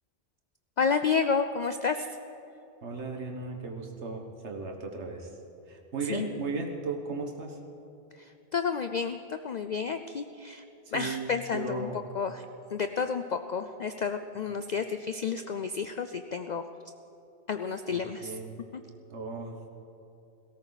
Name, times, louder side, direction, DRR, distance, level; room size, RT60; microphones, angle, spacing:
voice 1, 0.8-2.2 6.1-6.2 8.1-10.6 10.9-11.9 12.1-16.6 17.5-18.4, left 5 dB, 50° left, 8 dB, 0.5 m, -31 dB
voice 2, 2.8-5.4 5.7-7.6 10.9-12.0 17.9-18.6 19.1-19.7, right 3 dB, 80° right, 2 dB, 1.8 m, -36 dB
18.5 x 17.0 x 4.1 m, 2.9 s
omnidirectional pair, 1.2 m